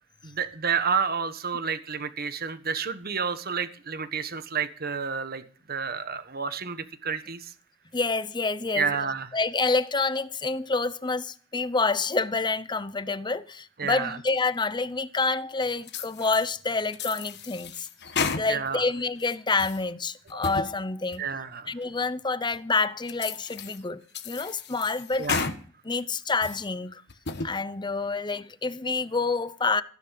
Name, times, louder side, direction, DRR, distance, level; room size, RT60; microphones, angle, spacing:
voice 1, 0.2-5.4 5.7-7.5 8.7-9.4 13.8-14.2 18.2-18.8 21.2-21.7 25.2-25.5, right 6 dB, 50° right, 1.4 m, -30 dB
voice 2, 7.9-8.9 9.3-17.9 18.3-21.2 21.7-25.3 25.8-27.0 27.4-29.8, left 3 dB, 20° left, 0.8 m, -28 dB
sound 1, 15.9-16.5 16.9-18.8 19.2-19.8 20.3-20.7 21.1-21.2 21.8-21.9 22.5-22.6 23.1-23.8 24.1-25.6 26.0-26.6 27.1-27.5, left 5 dB, 55° left, 1.4 m, -33 dB
16.0 x 10.5 x 5.9 m
head